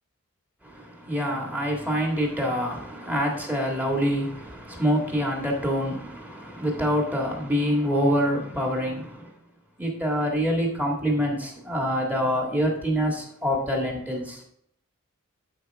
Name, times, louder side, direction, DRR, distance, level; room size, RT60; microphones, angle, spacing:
voice 1, 0.6-9.3 9.8-14.4, equal, 10° right, 1.8 m, -26 dB
11.5 x 5.2 x 3.5 m
head